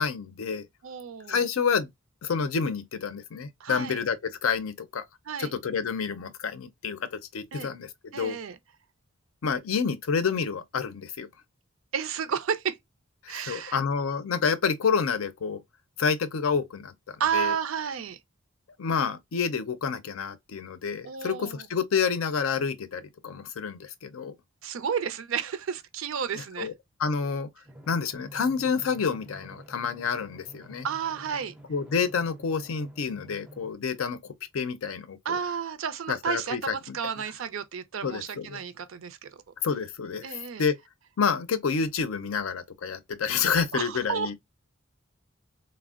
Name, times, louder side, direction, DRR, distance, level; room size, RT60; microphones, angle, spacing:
voice 1, 0.0-0.7 1.3-1.9 2.2-5.0 5.4-8.4 9.4-11.3 13.2-15.6 16.0-17.5 18.8-24.3 26.3-26.7 27.0-27.5 27.9-30.9 31.7-35.4 36.1-37.0 38.0-38.6 39.6-40.3 40.6-40.7 41.2-44.3, left 6 dB, 90° left, 0.5 m, -29 dB
voice 2, 0.8-1.5 3.6-4.0 5.3-5.5 7.5-7.7 8.1-8.6 11.9-12.8 13.3-13.8 17.2-18.2 21.0-21.6 24.6-26.7 30.8-31.5 35.3-39.3 40.2-40.6 43.7-44.3, right 7 dB, 75° right, 0.5 m, -31 dB
Drum, 27.6-33.7, right 1 dB, 5° right, 0.4 m, -49 dB
3.3 x 2.0 x 2.3 m
head